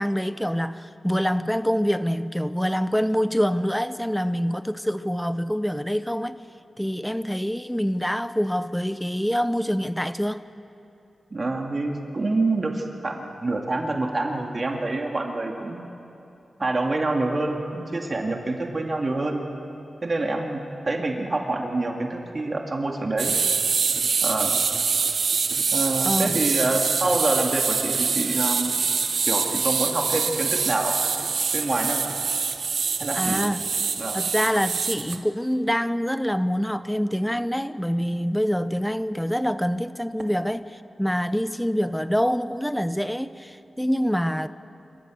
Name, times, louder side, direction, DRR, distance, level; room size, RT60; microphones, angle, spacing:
voice 1, 0.0-6.4 6.8-10.5 26.0-26.4 33.1-33.7 34.1-44.5, equal, 5° left, 13 dB, 0.8 m, -25 dB
voice 2, 11.3-15.9 16.6-19.4 20.0-23.3 24.2-24.6 25.7-28.8 29.3-31.0 31.5-32.2 33.0-33.5 34.0-34.2, right 2 dB, 45° right, 2 dB, 2.4 m, -26 dB
sound 1, 23.2-35.2, right 5 dB, 75° right, 1.0 m, -25 dB
28.0 x 14.5 x 6.5 m, 2.9 s
cardioid pair, 55°, 0 cm